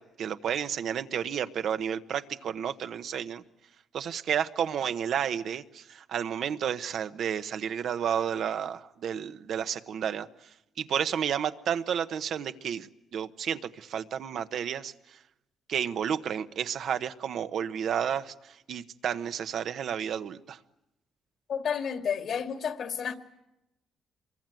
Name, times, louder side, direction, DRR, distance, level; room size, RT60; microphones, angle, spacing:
voice 1, 0.2-3.4 3.9-10.3 10.8-14.9 15.7-20.6, right 8 dB, 65° right, 1.1 m, -31 dB
voice 2, 21.5-23.1, left 7 dB, 65° left, 2.4 m, -31 dB
26.0 x 23.0 x 9.2 m
cardioid pair, 90°, 0 cm